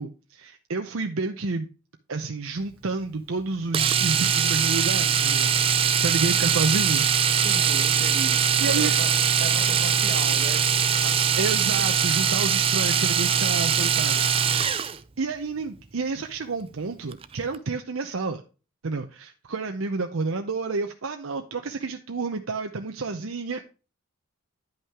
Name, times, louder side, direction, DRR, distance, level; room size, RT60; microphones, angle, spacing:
voice 1, 0.0-1.7 2.1-7.3 8.6-9.0 11.4-14.9 15.2-18.4 18.8-23.6, right 3 dB, 70° right, 0.7 m, -30 dB
Domestic sounds home sounds, 3.7-15.0 17.1-17.3 17.5-17.6, right 7 dB, 25° right, 0.4 m, -22 dB
voice 2, 7.4-11.8, right 2 dB, 50° right, 1.3 m, -37 dB
10.5 x 5.6 x 3.6 m
head